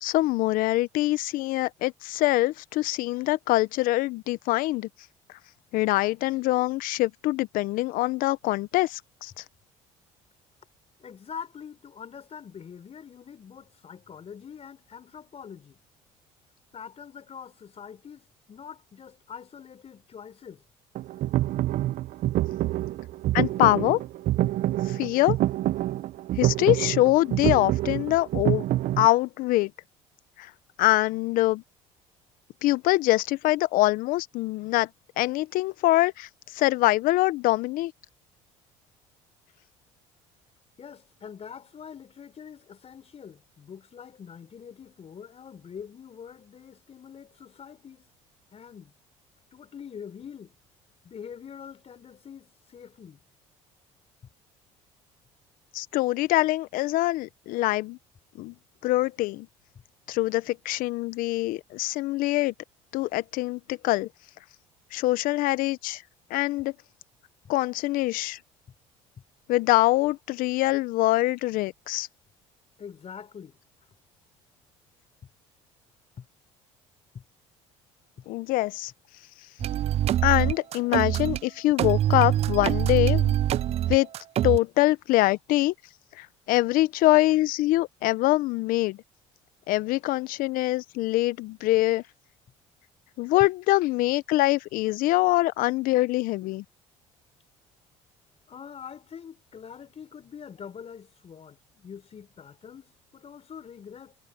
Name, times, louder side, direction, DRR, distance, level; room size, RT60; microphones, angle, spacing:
voice 1, 0.0-4.9 5.7-9.4 23.3-24.0 24.9-25.4 26.4-28.6 29.0-29.7 30.4-30.5 30.8-31.6 32.6-34.9 35.2-37.9 55.7-58.0 58.3-58.5 58.8-59.5 60.1-62.5 62.9-64.1 64.9-66.0 66.3-66.7 67.5-68.4 69.5-72.1 78.3-78.9 80.2-83.4 83.9-84.1 84.4-85.7 86.2-89.0 89.7-92.0 93.2-96.6, left 18 dB, 65° left, 1.1 m, -24 dB
voice 2, 11.0-15.8 16.7-20.6 40.8-48.0 48.5-48.9 49.5-50.6 51.0-53.2 72.8-73.6 76.2-76.3 77.1-77.2 79.6-79.7 83.7-83.8 98.5-104.2, left 7 dB, 40° left, 5.3 m, -44 dB
sound 1, 20.9-29.1, right 15 dB, 60° right, 0.8 m, -27 dB
sound 2, 79.6-81.4 81.8-84.6, right 12 dB, 45° right, 0.4 m, -24 dB
hypercardioid pair, 70°, 15 cm